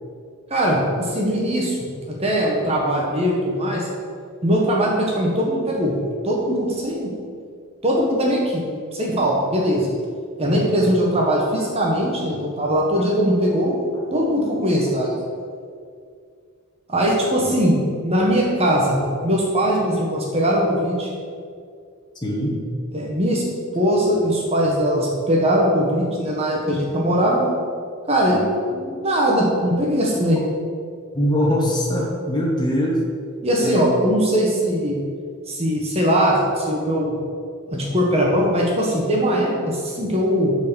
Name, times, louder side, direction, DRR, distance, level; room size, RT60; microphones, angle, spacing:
voice 1, 0.5-1.8 2.1-3.9 4.4-6.0 6.2-7.1 7.8-8.6 8.9-9.9 10.4-13.8 14.1-15.1 16.9-21.1 22.9-23.4 23.7-27.5 28.1-28.4 28.7-30.4 33.4-35.0 35.5-37.1 37.7-40.6, equal, 30° right, -2 dB, 1.3 m, -20 dB
voice 2, 22.2-22.6 31.1-33.0 33.6-33.8, equal, 20° left, -2 dB, 1.6 m, -22 dB
8.9 x 4.8 x 7.0 m, 2.2 s
head